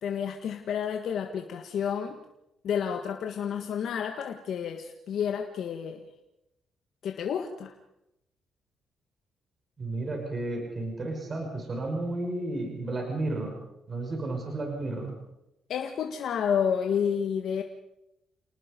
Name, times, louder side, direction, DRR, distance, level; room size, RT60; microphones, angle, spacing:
voice 1, 0.0-2.2 2.6-6.0 7.0-7.7 15.7-17.6, left 7 dB, 70° left, 4 dB, 1.7 m, -30 dB
voice 2, 9.8-13.6 13.9-15.1, right 2 dB, 35° right, 2 dB, 5.9 m, -32 dB
29.0 x 19.0 x 5.4 m, 0.88 s
cardioid pair, 90°, 0 cm